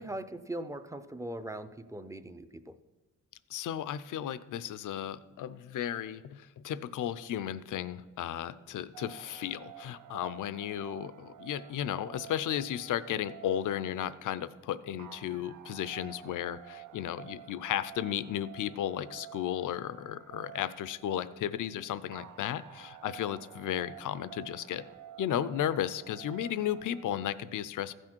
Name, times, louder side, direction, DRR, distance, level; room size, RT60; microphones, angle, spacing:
voice 1, 0.0-2.8, right 1 dB, 10° right, 10 dB, 0.4 m, -40 dB
voice 2, 3.5-24.8 25.2-27.9, left 10 dB, 75° left, 15 dB, 0.5 m, -34 dB
sound 1, 8.9-27.0, right 11 dB, 80° right, 0.6 m, -51 dB
15.0 x 6.3 x 4.4 m, 1.1 s
cardioid pair, 105°, 31 cm